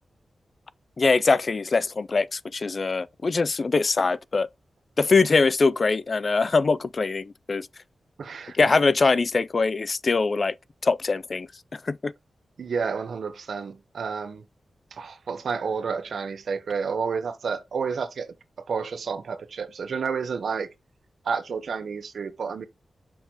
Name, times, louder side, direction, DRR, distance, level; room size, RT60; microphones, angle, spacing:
voice 1, 1.0-4.5 5.0-7.7 8.5-10.6 10.8-12.1, left 4 dB, 45° left, 0.3 m, -23 dB
voice 2, 8.2-8.6 12.6-14.4 14.9-18.3 18.7-20.7 21.2-22.6, right 5 dB, 75° right, 0.9 m, -30 dB
6.5 x 5.7 x 2.9 m
wide cardioid pair, 120°, 0 cm